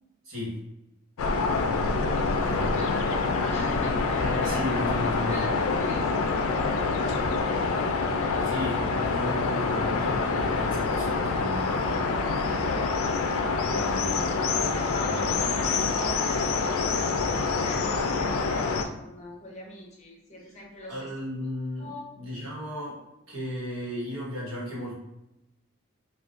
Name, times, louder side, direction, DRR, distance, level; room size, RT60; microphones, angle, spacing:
voice 1, 0.2-0.6 2.4-3.1 4.2-5.4 8.4-12.4 13.6-14.3 15.0-15.3 20.4-20.5 20.9-21.9 22.1-23.0 23.3-24.9, left 1 dB, 80° right, -4 dB, 1.2 m, -35 dB
sound 1, 1.2-18.8, left 4 dB, 85° left, 0.4 m, -26 dB
voice 2, 2.1-4.6 5.3-7.9 14.7-21.1 21.8-22.0, left 1 dB, 35° left, -1 dB, 0.6 m, -41 dB
3.7 x 2.3 x 2.4 m, 0.91 s
head